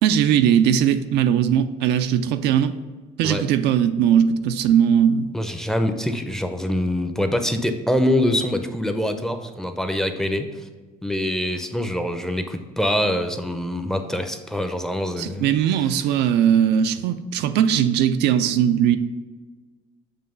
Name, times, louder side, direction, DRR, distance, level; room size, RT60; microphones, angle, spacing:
voice 1, 0.0-2.8 3.2-5.3 15.2-19.0, right 9 dB, 85° right, 9 dB, 0.4 m, -19 dB
voice 2, 5.3-10.5 11.0-15.5, left 1 dB, 5° left, 7 dB, 0.5 m, -24 dB
6.9 x 3.0 x 5.4 m, 1.3 s
cardioid pair, 110°, 17 cm